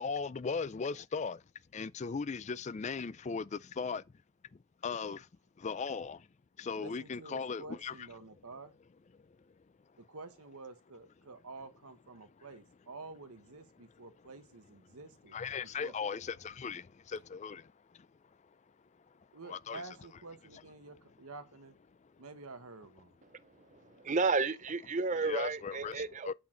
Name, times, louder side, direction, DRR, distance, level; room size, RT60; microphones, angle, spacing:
voice 1, 0.0-1.4 1.7-4.0 4.5-5.3 5.6-6.3 6.6-8.1 9.1-9.6 9.9-10.0 12.4-12.5 13.8-14.0 15.3-18.1 18.4-18.6 18.9-19.8 22.0-22.2 23.3-24.0 25.2-26.3, left 5 dB, 30° left, 0.3 m, -39 dB
voice 2, 6.8-8.7 10.1-15.4 15.8-15.9 19.3-21.7 22.2-23.2, right 3 dB, 80° right, 1.3 m, -49 dB
voice 3, 23.7-26.3, right 4 dB, 35° right, 0.5 m, -32 dB
8.4 x 6.0 x 3.8 m
head